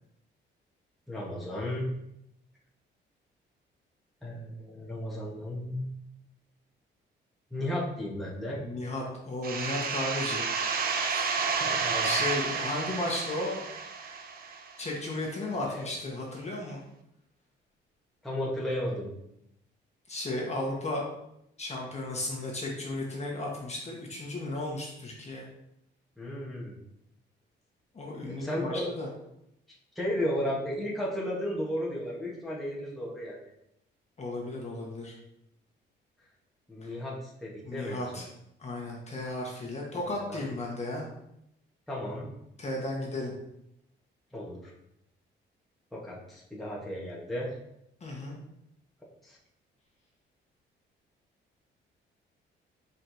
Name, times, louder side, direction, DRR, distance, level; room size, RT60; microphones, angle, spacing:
voice 1, 1.1-1.9 4.2-5.9 7.5-8.6 11.5-12.1 15.6-15.9 18.2-19.1 26.2-26.8 28.3-28.8 29.9-33.4 36.7-38.2 40.3-40.5 41.9-42.3 44.3-44.7 45.9-47.5 49.2-49.4, left 1 dB, ahead, -6 dB, 1.2 m, -34 dB
voice 2, 8.5-10.4 11.1-11.3 11.6-13.6 14.8-16.8 20.1-21.0 21.6-25.5 27.9-29.1 34.2-35.1 36.8-36.9 37.6-38.2 38.6-41.1 42.6-43.3 48.0-48.4, left 2 dB, 35° left, -2 dB, 1.2 m, -34 dB
sound 1, 9.4-15.0, right 5 dB, 50° right, 0.6 m, -31 dB
4.4 x 4.1 x 2.6 m, 0.80 s
cardioid pair, 90°, 20 cm